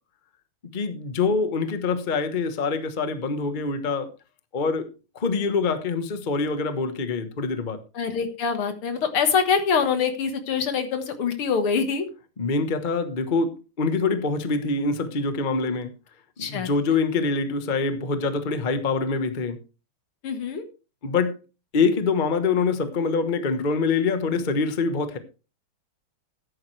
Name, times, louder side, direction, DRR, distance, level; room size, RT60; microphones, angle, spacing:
voice 1, 0.7-4.1 4.5-4.9 5.1-7.8 12.4-15.9 16.4-19.6 21.0-21.3 21.7-25.2, left 4 dB, 30° left, 1.0 m, -25 dB
voice 2, 7.9-12.1 16.4-16.7 20.2-20.6, left 6 dB, 75° left, 2.4 m, -24 dB
13.5 x 10.5 x 3.3 m
omnidirectional pair, 2.4 m